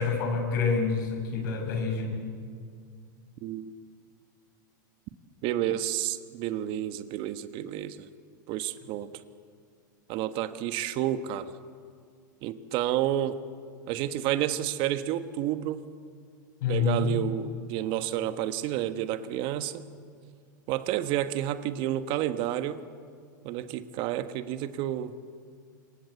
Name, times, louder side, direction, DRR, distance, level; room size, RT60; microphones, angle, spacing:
voice 1, 0.0-2.3 16.6-17.2, left 5 dB, 70° left, 5 dB, 6.1 m, -27 dB
voice 2, 3.4-3.7 5.4-8.1 8.5-9.1 10.1-11.5 12.4-13.4 13.9-15.9 16.7-19.9 20.7-22.8 23.4-25.1, right 12 dB, 50° right, 10 dB, 1.4 m, -30 dB
26.0 x 22.5 x 8.2 m, 2.1 s
hypercardioid pair, 110°, 11 cm